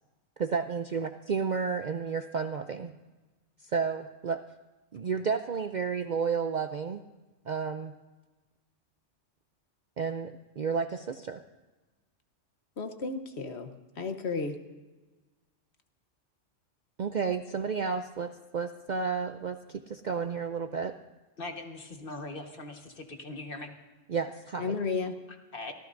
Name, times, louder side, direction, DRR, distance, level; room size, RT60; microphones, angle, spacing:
voice 1, 0.4-2.9 3.7-4.4 4.9-7.0 7.5-7.9 10.0-11.4 17.0-20.9 24.1-24.8, right 5 dB, 55° right, 8 dB, 0.5 m, -31 dB
voice 2, 12.8-13.7 14.0-14.5 24.6-25.1, left 4 dB, 65° left, 7 dB, 1.2 m, -32 dB
voice 3, 21.4-23.7 25.3-25.7, left 2 dB, 50° left, 4 dB, 1.5 m, -41 dB
25.5 x 14.0 x 2.6 m, 1.2 s
omnidirectional pair, 1.2 m